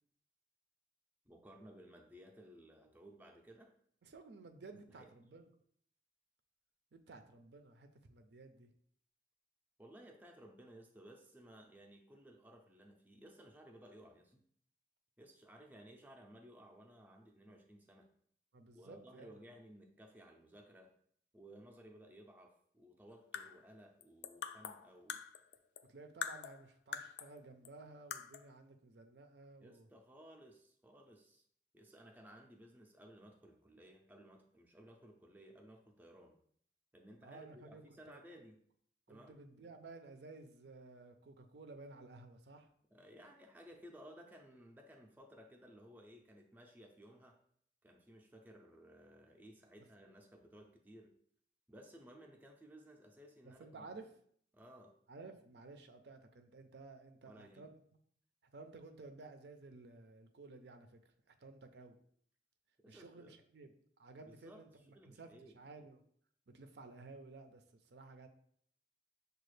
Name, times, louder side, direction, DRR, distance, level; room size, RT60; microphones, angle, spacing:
voice 1, 1.3-3.7 4.9-5.1 9.8-14.4 15.2-18.1 18.7-20.9 21.3-25.2 29.6-31.4 31.7-36.4 36.9-38.6 39.1-39.4 42.9-47.4 47.8-51.1 51.7-54.0 54.5-55.0 57.2-57.7 62.8-63.4 64.2-65.6, equal, 10° right, 1 dB, 0.4 m, -58 dB
voice 2, 4.0-5.5 6.9-8.7 18.5-19.3 25.9-29.9 37.2-37.8 38.1-38.2 39.1-42.7 53.4-54.1 55.1-57.7 58.5-61.0 61.3-62.0 62.9-63.7 64.0-65.3 65.5-66.0 66.5-68.3, right 3 dB, 70° right, 7 dB, 0.5 m, -55 dB
sound 1, 23.1-25.9 26.2-27.4 27.6-27.7 28.1-28.5, left 7 dB, 75° left, 0.3 m, -45 dB
6.5 x 2.3 x 3.2 m, 0.63 s
head